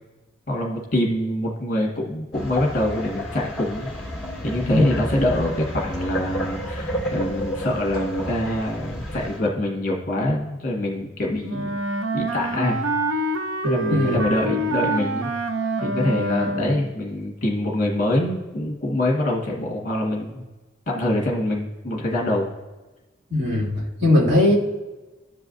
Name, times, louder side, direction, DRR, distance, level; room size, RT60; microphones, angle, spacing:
voice 1, 0.5-3.9 4.4-11.8 12.1-12.8 13.6-15.3 15.8-20.4 20.9-22.5, left 1 dB, 40° left, -2 dB, 1.7 m, -25 dB
sound 1, 2.3-9.4, equal, ahead, 2.2 m, -31 dB
Wind instrument woodwind instrument, 11.5-16.9, right 2 dB, 80° right, 0.7 m, -26 dB
voice 2, 13.9-14.2 23.3-23.7 24.0-24.5, left 2 dB, 65° right, -7 dB, 2.6 m, -19 dB
13.5 x 4.8 x 2.6 m, 1.1 s
head